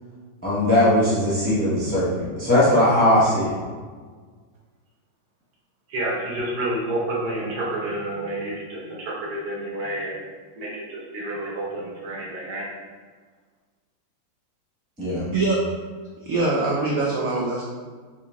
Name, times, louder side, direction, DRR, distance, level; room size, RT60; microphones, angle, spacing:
voice 1, 0.4-3.5 15.0-15.3, left 1 dB, 5° left, -9 dB, 0.7 m, -19 dB
voice 2, 5.9-9.0 9.3-10.1 10.6-10.8 11.1-12.6, right 1 dB, 60° right, -5 dB, 1.4 m, -29 dB
voice 3, 16.3-17.6, right 3 dB, 85° right, -3 dB, 0.7 m, -23 dB
3.7 x 3.0 x 3.4 m, 1.5 s
omnidirectional pair, 2.1 m